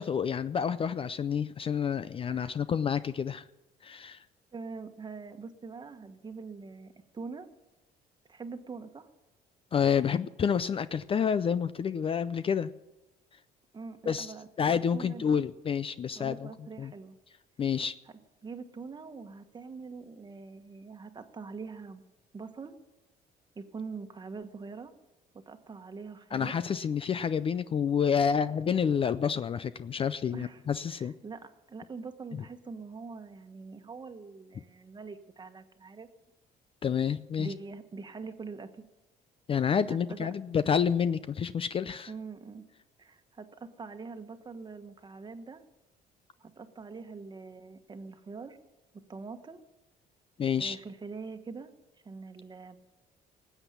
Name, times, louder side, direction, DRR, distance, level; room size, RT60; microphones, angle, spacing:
voice 1, 0.0-3.5 3.8-4.2 9.7-12.7 14.1-14.3 14.6-16.5 16.8-16.9 17.6-17.9 26.3-31.1 36.8-37.5 39.5-42.1 50.4-50.8, left 7 dB, 35° left, 14 dB, 0.4 m, -29 dB
voice 2, 4.5-7.5 8.3-9.1 13.7-15.4 16.1-17.2 18.4-22.0 22.3-22.7 23.5-24.9 25.3-26.6 30.3-30.6 30.9-36.1 37.4-38.8 39.6-39.7 40.1-40.3 42.1-42.6 43.0-45.6 46.4-48.6 49.1-49.6 50.6-51.7 52.0-52.8, right 4 dB, 25° right, 8 dB, 1.3 m, -43 dB
19.0 x 8.1 x 6.9 m, 0.97 s
cardioid pair, 110°, 17 cm